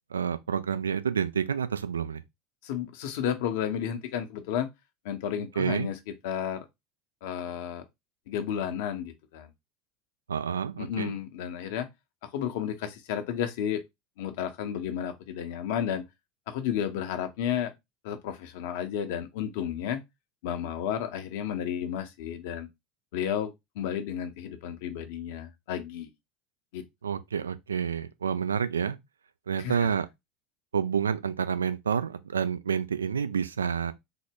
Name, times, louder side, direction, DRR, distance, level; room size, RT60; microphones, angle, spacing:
voice 1, 0.1-2.2 5.6-5.9 10.3-11.1 27.0-29.0 29.5-30.1 30.7-33.9, right 7 dB, 80° right, 0.3 m, -29 dB
voice 2, 2.6-4.7 5.0-6.0 6.2-6.6 7.2-7.8 8.3-9.5 10.8-11.9 12.3-13.8 14.2-16.0 16.5-17.7 18.0-20.0 20.4-22.7 23.1-26.1 26.7-26.8 29.6-29.9, left 9 dB, 65° left, 0.6 m, -32 dB
3.8 x 2.1 x 3.4 m
figure-of-eight pair, 75°, 0 cm